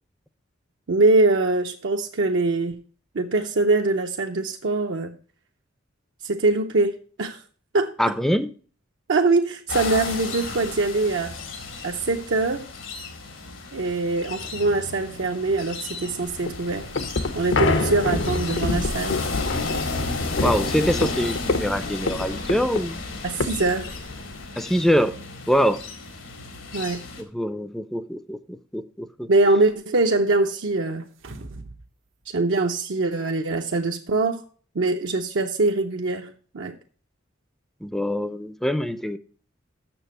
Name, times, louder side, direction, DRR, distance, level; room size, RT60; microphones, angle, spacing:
voice 1, 0.9-2.8 3.1-5.2 6.2-7.4 7.7-8.0 9.1-11.3 11.8-12.7 13.7-16.9 17.3-19.2 23.2-23.9 26.7-27.0 29.3-31.1 32.3-34.4 34.7-36.8, right 3 dB, 70° right, 0.6 m, -23 dB
voice 2, 8.0-8.5 20.4-23.0 24.6-25.2 25.5-25.8 27.2-29.3 37.8-39.2, equal, ahead, 0.4 m, -24 dB
sound 1, 9.7-27.2, left 3 dB, 85° left, 1.9 m, -34 dB
sound 2, 16.3-24.4, left 3 dB, 70° left, 0.8 m, -27 dB
sound 3, 31.0-31.9 32.2-32.3, right 2 dB, 90° right, 1.0 m, -40 dB
7.0 x 6.6 x 6.6 m
head